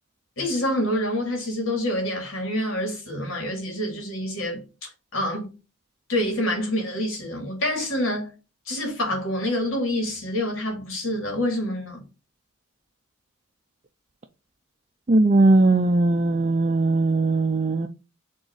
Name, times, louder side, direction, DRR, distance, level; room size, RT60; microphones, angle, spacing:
voice 1, 0.4-4.6 5.1-5.5 6.1-8.3 8.7-12.0, left 1 dB, 70° left, 3.2 m, -27 dB
voice 2, 15.1-17.9, right 2 dB, 35° right, 0.5 m, -19 dB
6.4 x 3.8 x 4.9 m
head